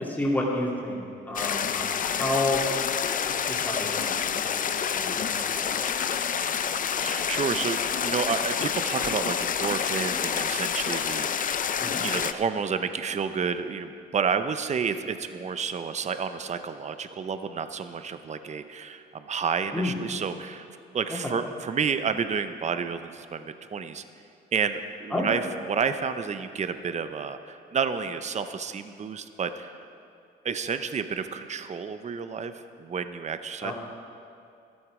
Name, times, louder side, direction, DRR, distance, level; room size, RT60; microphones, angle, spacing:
voice 1, 0.0-2.6 3.2-4.6 4.9-5.7 11.8-12.0 19.7-20.0 21.2-21.4 25.1-25.3 33.6-33.7, left 1 dB, 10° left, -4 dB, 2.4 m, -30 dB
sound 1, 1.4-12.3, left 7 dB, 45° left, 0.5 m, -28 dB
voice 2, 7.0-11.7 12.0-20.7 20.9-24.0 24.5-29.8 30.4-33.7, right 6 dB, 35° right, 10 dB, 0.7 m, -30 dB
13.0 x 12.5 x 4.9 m, 2.5 s
cardioid pair, 90°, 20 cm